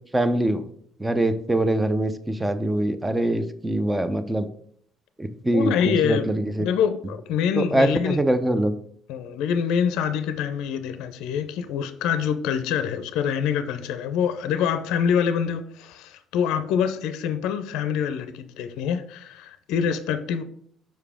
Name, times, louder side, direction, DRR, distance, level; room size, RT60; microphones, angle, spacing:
voice 1, 0.1-0.6 1.0-4.5 5.2-6.6 7.6-8.7, right 1 dB, 15° right, 0.7 m, -23 dB
voice 2, 5.5-6.3 6.6-8.2 9.1-20.4, left 7 dB, 75° left, 0.5 m, -25 dB
5.8 x 4.9 x 3.5 m
supercardioid pair, 70°, 0 cm